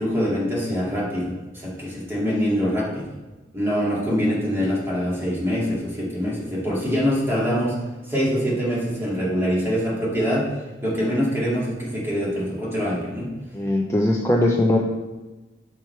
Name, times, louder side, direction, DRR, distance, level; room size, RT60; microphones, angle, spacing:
voice 1, 0.0-3.1 3.5-7.8 8.1-10.5 10.8-13.3, equal, 15° right, -7 dB, 2.3 m, -24 dB
voice 2, 13.5-14.8, left 1 dB, 15° left, -1 dB, 0.5 m, -20 dB
5.9 x 4.6 x 4.5 m, 1.2 s
head